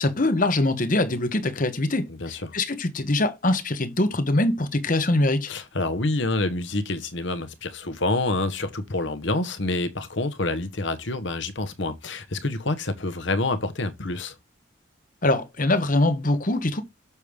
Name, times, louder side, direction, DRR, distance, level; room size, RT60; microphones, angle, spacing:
voice 1, 0.0-5.5 15.2-16.8, left 2 dB, 40° left, 1.0 m, -23 dB
voice 2, 2.1-2.5 5.5-14.3, left 2 dB, 60° left, 1.1 m, -27 dB
6.9 x 6.4 x 3.4 m
head